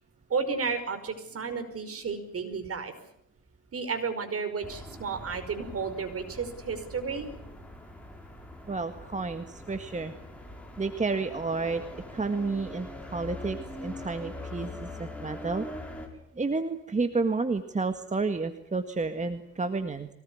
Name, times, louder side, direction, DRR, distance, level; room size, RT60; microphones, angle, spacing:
voice 1, 0.3-2.9 3.7-7.3, right 5 dB, 50° right, 8 dB, 5.3 m, -32 dB
sound 1, 4.6-16.1, left 1 dB, 5° left, 6.4 m, -43 dB
voice 2, 8.7-10.1 10.8-11.8 12.1-12.9 13.1-15.7 16.3-20.1, right 3 dB, 25° right, 8 dB, 1.8 m, -30 dB
23.5 x 19.0 x 9.7 m, 0.79 s
cardioid pair, 90°, 30 cm